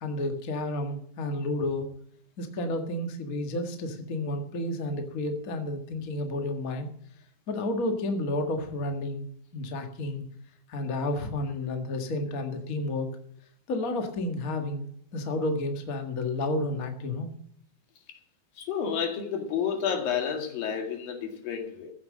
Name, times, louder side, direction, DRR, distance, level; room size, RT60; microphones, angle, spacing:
voice 1, 0.0-1.9 2.4-6.9 7.5-9.3 9.5-10.2 10.7-13.1 13.7-17.3, left 2 dB, 35° left, 1.4 m, -31 dB
voice 2, 18.6-21.9, left 7 dB, 80° left, 3.6 m, -30 dB
14.5 x 7.8 x 7.3 m
omnidirectional pair, 4.0 m